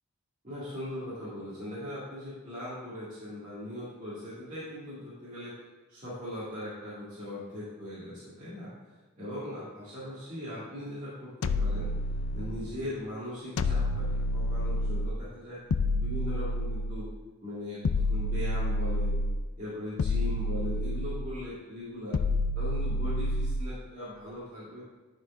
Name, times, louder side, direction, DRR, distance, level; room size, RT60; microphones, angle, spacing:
voice 1, 0.4-5.5 5.9-8.7 9.2-11.9 12.3-15.6 15.9-17.1 17.4-17.8 18.1-19.2 19.6-22.2 22.5-24.8, left 1 dB, 35° right, -12 dB, 2.2 m, -39 dB
sound 1, 11.4-12.7 13.6-15.2 15.7-17.1 17.8-19.5 20.0-21.4 22.1-23.7, left 1 dB, 75° left, 0.4 m, -29 dB
11.0 x 4.5 x 3.7 m, 1.2 s
head